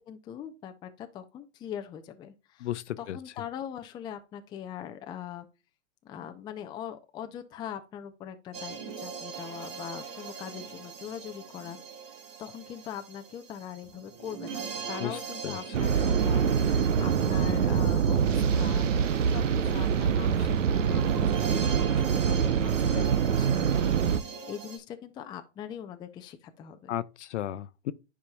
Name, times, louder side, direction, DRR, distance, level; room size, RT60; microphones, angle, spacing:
voice 1, 0.1-2.7 3.0-5.5 6.0-11.8 12.4-23.9 24.2-26.9, left 9 dB, 10° left, 0.4 m, -41 dB
voice 2, 2.6-3.2 15.0-15.2 15.4-15.6 26.9-27.9, left 12 dB, 70° left, 0.7 m, -34 dB
sound 1, 8.5-24.8, right 6 dB, 35° right, 1.6 m, -41 dB
sound 2, 15.7-24.2, right 7 dB, 90° right, 0.8 m, -25 dB
10.0 x 4.9 x 2.3 m
hypercardioid pair, 130°, 37 cm